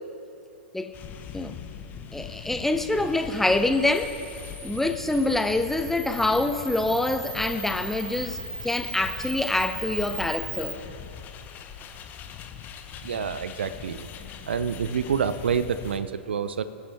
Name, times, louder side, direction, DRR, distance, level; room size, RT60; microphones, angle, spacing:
sound 1, 0.9-16.0, left 8 dB, 30° left, 1.0 m, -41 dB
voice 1, 2.1-4.1 4.6-10.8, left 2 dB, 5° left, 8 dB, 0.6 m, -25 dB
Camera, 3.7-10.7, right 2 dB, 80° right, 2.6 m, -39 dB
voice 2, 13.0-14.1 14.5-16.6, right 7 dB, 65° right, 14 dB, 0.6 m, -27 dB
24.0 x 10.0 x 3.5 m, 2.6 s
figure-of-eight pair, 105°, 6 cm